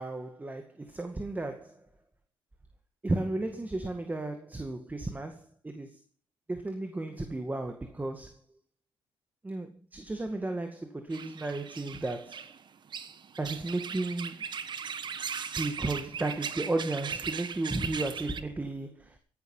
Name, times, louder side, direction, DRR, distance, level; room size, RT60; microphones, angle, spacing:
voice 1, 0.0-1.8 3.0-6.0 6.5-8.4 9.4-12.5 13.4-14.5 15.6-19.2, right 2 dB, 15° right, 1.9 m, -34 dB
sound 1, 11.1-18.4, right 6 dB, 45° right, 1.4 m, -38 dB
17.0 x 11.5 x 5.5 m
cardioid pair, 105°, 10 cm